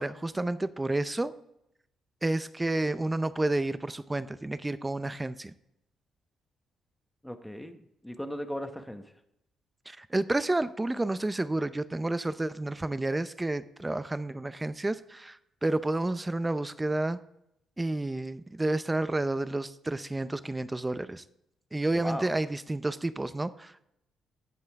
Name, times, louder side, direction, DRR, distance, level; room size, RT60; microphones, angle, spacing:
voice 1, 0.0-1.3 2.2-5.5 9.9-17.2 17.8-21.2 21.7-23.8, right 2 dB, 15° right, 14 dB, 0.5 m, -30 dB
voice 2, 7.2-9.1 21.9-22.4, equal, 5° left, 7 dB, 1.0 m, -37 dB
15.5 x 5.5 x 3.5 m, 0.80 s
cardioid pair, 90°, 0 cm